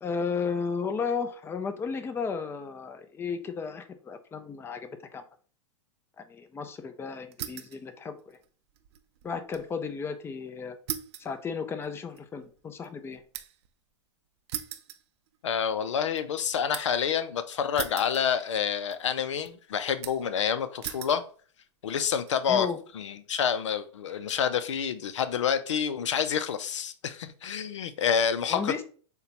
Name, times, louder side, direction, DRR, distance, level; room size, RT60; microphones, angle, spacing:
voice 1, 0.0-5.2 6.2-8.4 9.2-10.8 11.2-13.2 22.5-22.8 28.5-28.8, left 5 dB, 15° left, 0.5 m, -34 dB
sound 1, 7.3-7.8 8.2-9.7 10.0-10.1 10.9-13.7 14.5-15.6 16.0-17.0 17.8-18.7 18.9-19.5 20.0-20.4 20.8-21.2 21.9-22.3, right 12 dB, 65° right, 0.5 m, -40 dB
voice 2, 15.4-21.2 21.8-22.7 22.9-28.8, left 7 dB, 85° left, 0.5 m, -28 dB
6.5 x 2.2 x 2.9 m
hypercardioid pair, 115°, 15 cm